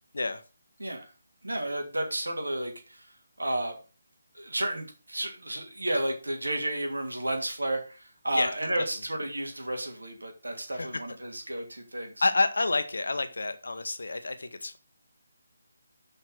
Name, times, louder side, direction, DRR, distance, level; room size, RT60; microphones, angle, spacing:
voice 1, 1.4-3.1 3.4-3.8 4.3-12.2, right 1 dB, 85° right, 3 dB, 2.8 m, -32 dB
voice 2, 12.2-14.8, left 3 dB, 70° left, 10 dB, 1.1 m, -28 dB
6.7 x 5.4 x 6.2 m, 0.36 s
figure-of-eight pair, 155°, 0 cm